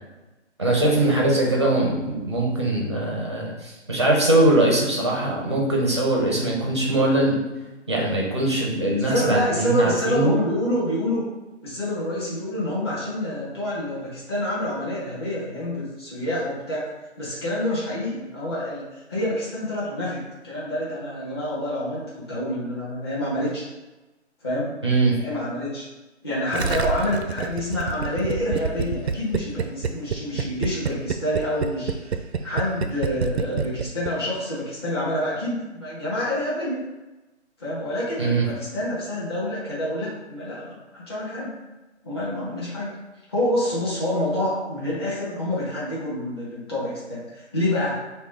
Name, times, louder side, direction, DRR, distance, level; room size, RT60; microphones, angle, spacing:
voice 1, 0.6-7.4 7.9-10.3 24.8-25.2 38.2-38.5, right 2 dB, 25° right, -3 dB, 0.6 m, -21 dB
voice 2, 9.1-11.2 11.6-16.8 17.2-23.6 24.4-24.7 25.2-25.8 26.2-32.1 32.4-36.8 37.6-41.5 42.0-42.9 43.3-48.0, left 1 dB, 20° left, -8 dB, 1.1 m, -27 dB
Gurgling, 26.5-34.1 34.4-34.5, right 6 dB, 70° right, 0.5 m, -27 dB
5.8 x 2.3 x 3.4 m, 1.1 s
hypercardioid pair, 180°, 35 cm